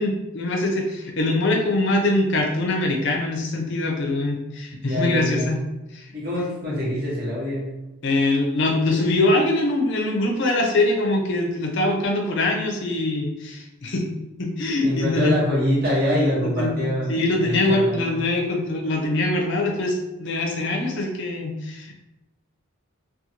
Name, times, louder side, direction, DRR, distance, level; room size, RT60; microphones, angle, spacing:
voice 1, 0.0-5.6 5.9-6.2 8.0-15.3 16.1-16.8 17.1-21.9, left 2 dB, 55° left, 1 dB, 0.5 m, -23 dB
voice 2, 4.8-5.6 6.1-7.9 14.8-17.1 17.4-18.2, equal, 45° right, -7 dB, 1.2 m, -24 dB
2.6 x 2.4 x 2.8 m, 0.97 s
head